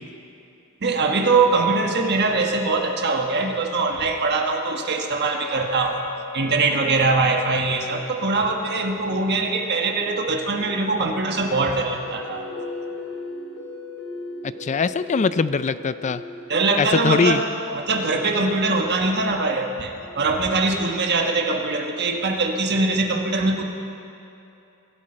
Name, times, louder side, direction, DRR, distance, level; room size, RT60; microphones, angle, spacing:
voice 1, 0.8-6.1 6.3-12.4 16.5-17.5 17.7-23.6, right 3 dB, 50° right, 2 dB, 1.3 m, -22 dB
Wind instrument woodwind instrument, 5.2-10.8, left 5 dB, 90° left, 1.3 m, -40 dB
sound 1, 10.5-20.6, left 2 dB, 65° left, 2.5 m, -38 dB
voice 2, 14.6-16.2 16.8-17.4, left 5 dB, 30° left, 14 dB, 0.4 m, -21 dB
22.0 x 12.5 x 4.4 m, 2.7 s
head